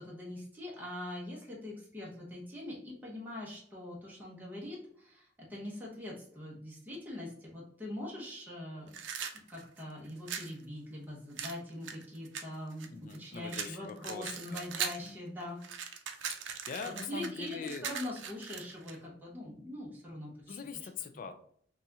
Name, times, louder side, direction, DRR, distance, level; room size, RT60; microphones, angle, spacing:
voice 1, 0.0-8.9 9.5-15.6 16.8-20.6, left 1 dB, 10° right, -4 dB, 0.9 m, -43 dB
sound 1, 8.9-10.5 11.4-13.2 13.5-15.1 15.4-19.0, right 7 dB, 75° right, 0.5 m, -40 dB
voice 2, 12.9-14.7 15.0-15.1 16.4-17.9 20.5-21.4, left 5 dB, 45° left, 8 dB, 0.3 m, -43 dB
4.0 x 2.4 x 2.7 m, 0.63 s
head